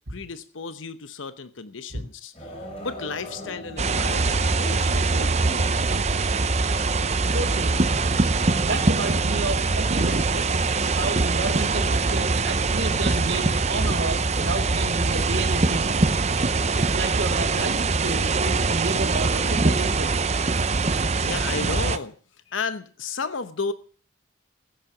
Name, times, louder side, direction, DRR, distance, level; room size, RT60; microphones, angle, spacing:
voice 1, 0.1-5.7 21.2-22.2 22.5-23.7, left 4 dB, 90° left, 12 dB, 0.9 m, -33 dB
sound 1, 2.3-8.6, equal, 30° left, 3.9 m, -44 dB
sound 2, 2.4-18.6, left 2 dB, 75° left, 7.3 m, -45 dB
sound 3, 3.8-22.0, right 3 dB, 35° right, 0.7 m, -23 dB
voice 2, 7.3-7.8 8.6-16.2 16.8-20.2, right 2 dB, 75° right, 2 dB, 2.1 m, -31 dB
15.0 x 8.9 x 7.1 m, 0.44 s
head